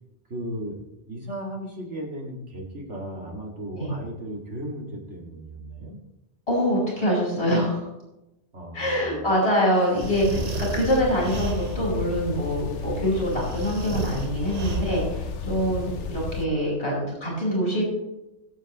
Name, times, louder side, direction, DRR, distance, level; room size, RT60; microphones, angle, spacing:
voice 1, 0.3-0.8 1.1-6.0 8.5-9.3 15.4-16.0, right 1 dB, 80° right, -1 dB, 2.6 m, -36 dB
voice 2, 6.5-7.9 8.7-17.8, equal, 60° left, -3 dB, 5.0 m, -25 dB
sound 1, 9.9-12.0 13.3-15.2, right 3 dB, 40° right, 0.9 m, -33 dB
sound 2, 10.0-16.5, left 4 dB, 90° left, 1.2 m, -33 dB
21.0 x 7.5 x 3.0 m, 0.94 s
omnidirectional pair, 1.2 m